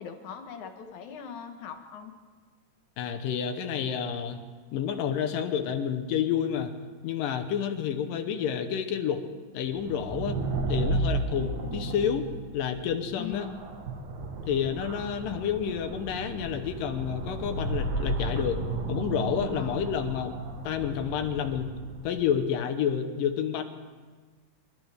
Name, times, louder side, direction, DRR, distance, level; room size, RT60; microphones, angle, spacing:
voice 1, 0.0-2.1 13.2-13.6 19.5-19.9, left 8 dB, 70° left, 5 dB, 2.4 m, -40 dB
voice 2, 3.0-4.4 4.7-6.7 7.0-9.2 9.5-10.4 10.7-12.3 12.5-13.5 14.5-18.6 18.9-20.4 20.6-21.7 22.0-23.6, left 8 dB, 85° left, 7 dB, 2.6 m, -29 dB
sound 1, 9.7-22.3, right 2 dB, 65° right, 2.6 m, -33 dB
29.0 x 12.5 x 3.4 m, 1.4 s
omnidirectional pair, 3.9 m